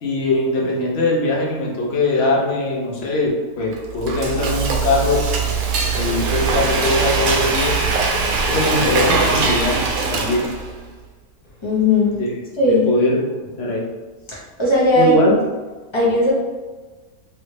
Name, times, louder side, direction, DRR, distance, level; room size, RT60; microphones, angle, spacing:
voice 1, 0.0-5.2 6.0-7.7 8.5-9.8 10.1-10.5 12.1-12.4 12.7-13.2 13.6-13.8 15.0-15.4, left 2 dB, 50° left, -3 dB, 0.9 m, -21 dB
Frying (food), 3.7-10.8, right 4 dB, 75° right, 1.0 m, -21 dB
voice 2, 11.6-12.2 12.6-12.9 14.3-15.2 15.9-16.3, left 1 dB, 25° left, -6 dB, 0.7 m, -17 dB
3.2 x 2.6 x 3.1 m, 1.3 s
omnidirectional pair, 1.6 m